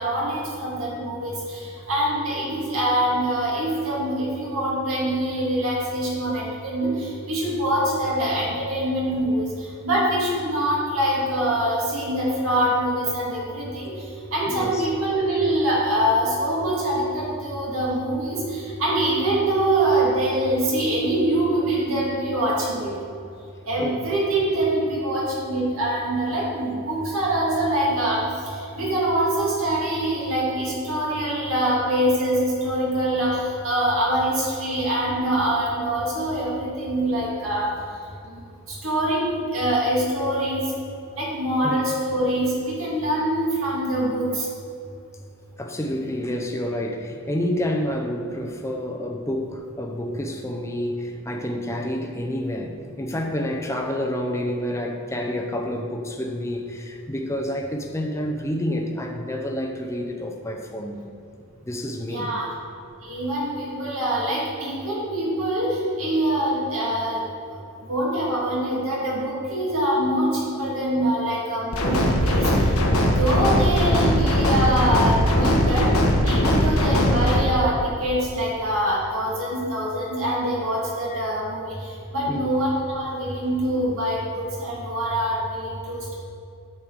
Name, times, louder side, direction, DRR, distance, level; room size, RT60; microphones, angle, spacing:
voice 1, 0.0-22.9 23.7-37.7 38.3-40.6 41.2-44.5 62.0-62.5 63.0-67.2 67.9-72.7 73.2-75.9 76.2-86.2, right 1 dB, 70° right, -5 dB, 2.1 m, -24 dB
voice 2, 14.5-14.9 23.8-24.1 41.6-41.8 45.6-61.0 61.6-62.3 82.3-82.5, left 1 dB, 15° left, 2 dB, 0.6 m, -29 dB
sound 1, 71.7-77.4, equal, 90° left, 1.3 m, -20 dB
8.7 x 6.6 x 4.7 m, 2.5 s
head